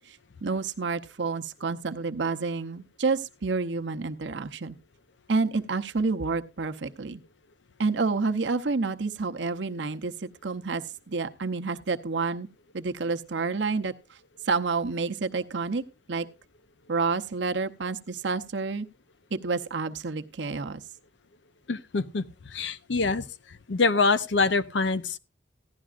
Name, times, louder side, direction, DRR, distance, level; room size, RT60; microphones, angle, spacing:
voice 1, 0.1-4.8 5.3-7.2 7.8-12.5 12.7-13.9 14.5-15.8 16.1-16.3 16.9-18.9 19.3-20.8, right 4 dB, 80° right, 0.7 m, -29 dB
voice 2, 21.7-22.2 22.5-23.2 23.7-25.2, left 4 dB, 80° left, 0.7 m, -25 dB
15.5 x 11.5 x 2.5 m
head